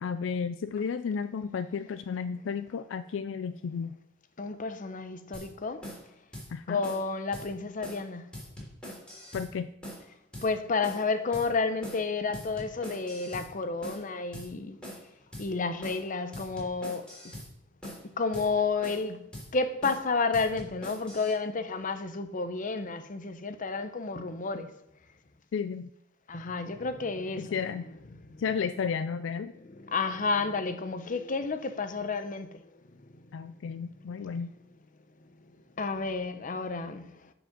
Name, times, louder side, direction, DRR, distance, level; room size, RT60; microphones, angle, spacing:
voice 1, 0.0-4.0 6.5-6.8 9.3-9.7 25.5-25.9 27.4-27.9 28.4-29.5 33.3-34.5, left 6 dB, 65° left, 0.4 m, -33 dB
voice 2, 4.4-5.9 6.7-8.3 10.4-14.8 15.4-17.1 18.0-19.2 19.5-24.7 26.3-27.5 28.3-28.4 29.8-32.6 35.8-37.2, left 4 dB, 40° left, 0.7 m, -31 dB
sound 1, 5.3-5.5 5.8-6.0 6.3-6.5 6.8-7.0 7.3-7.5 7.8-8.0 8.3-9.5 9.8-10.0 10.3-10.5 10.8-11.1 11.3-11.5 11.8-12.0 12.3-13.5 13.8-14.0 14.3-14.5 14.8-15.1 15.3-15.5 15.8-16.0 16.3-17.5 17.8-18.0 18.3-18.5 18.8-19.1 19.3-19.5 19.8-20.0 20.3-21.3, equal, 5° left, 3.5 m, -43 dB
10.0 x 5.1 x 6.0 m
head